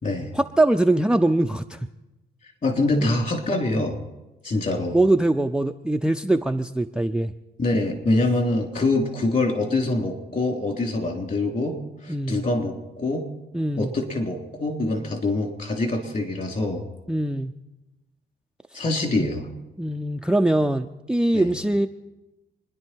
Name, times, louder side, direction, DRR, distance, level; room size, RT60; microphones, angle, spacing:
voice 1, 0.3-1.8 3.0-3.1 4.9-7.3 12.1-12.5 13.5-13.9 17.1-17.5 19.8-21.9, right 1 dB, 5° right, 8 dB, 0.5 m, -22 dB
voice 2, 2.6-4.0 4.4-5.0 7.6-11.8 12.0-13.3 13.8-16.8 18.7-19.5 21.3-21.5, left 2 dB, 40° left, 3 dB, 3.6 m, -24 dB
27.5 x 10.5 x 4.6 m, 0.99 s
cardioid pair, 90°, 20 cm